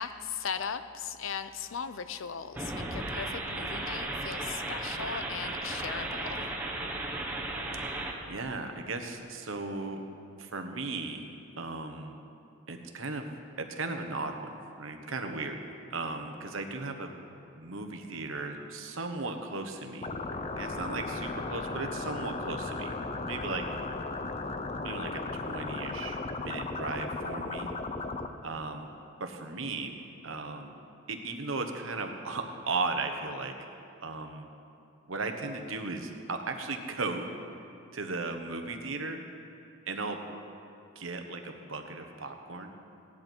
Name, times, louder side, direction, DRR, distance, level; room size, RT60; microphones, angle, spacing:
voice 1, 0.0-6.5, left 6 dB, 75° left, 12 dB, 0.6 m, -38 dB
sound 1, 2.5-8.1, right 2 dB, 10° right, 1.2 m, -35 dB
voice 2, 8.3-10.0 10.4-11.2 11.6-12.2 12.7-15.6 15.9-17.1 17.5-20.1 20.5-22.9 23.2-23.6 24.8-27.7 28.4-28.9 29.2-29.9 30.2-30.7 31.1-33.5 34.0-34.5 35.1-37.3 37.9-39.2 39.9-40.2 40.9-42.7, right 3 dB, 80° right, 5 dB, 1.2 m, -36 dB
sound 2, 20.0-28.3, left 3 dB, 30° left, 0.6 m, -36 dB
17.5 x 11.0 x 4.6 m, 2.6 s
head